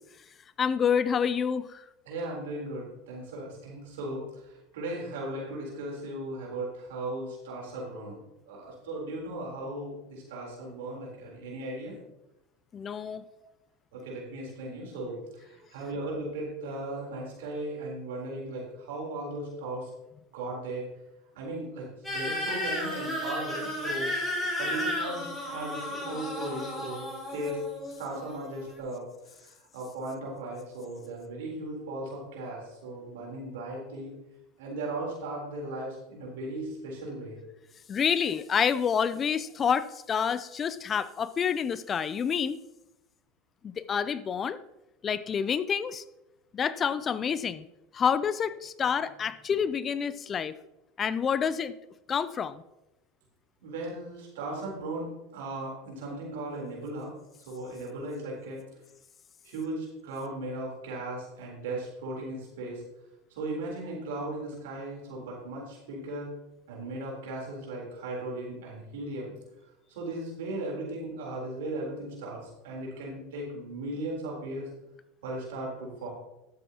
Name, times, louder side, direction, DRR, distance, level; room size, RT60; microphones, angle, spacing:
voice 1, 0.6-1.8 12.7-13.2 37.9-42.6 43.6-44.6 45.0-46.0 46.5-47.6 47.9-50.5 51.0-51.8 52.1-52.6, left 7 dB, 30° left, 16 dB, 0.4 m, -28 dB
voice 2, 2.0-12.0 13.9-19.9 20.3-20.9 21.3-24.1 24.6-29.0 29.4-34.1 34.6-37.4 53.6-58.6 59.4-62.8 63.3-66.3 66.7-69.3 69.9-74.7 75.2-76.1, right 2 dB, 75° right, -2 dB, 3.8 m, -37 dB
sound 1, 22.0-28.8, left 1 dB, 15° left, 3.9 m, -33 dB
12.0 x 8.0 x 2.9 m, 0.93 s
hypercardioid pair, 95°, 0 cm